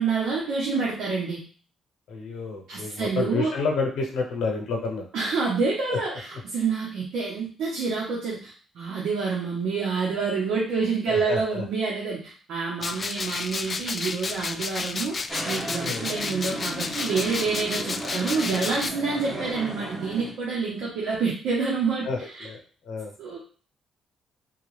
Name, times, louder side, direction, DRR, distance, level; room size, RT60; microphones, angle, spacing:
voice 1, 0.0-1.4 2.7-3.5 5.1-15.2 15.5-22.5 23.2-23.4, right 4 dB, 80° right, -4 dB, 1.0 m, -27 dB
voice 2, 2.1-5.0 11.1-11.6 15.8-16.0 22.0-22.6 22.8-23.1, left 4 dB, 80° left, 1 dB, 0.8 m, -29 dB
sound 1, 12.8-18.9, left 4 dB, 35° left, 0.3 m, -32 dB
sound 2, 15.3-20.3, right 1 dB, 20° right, 1.2 m, -35 dB
3.6 x 2.4 x 3.2 m, 0.40 s
cardioid pair, 90°, 0 cm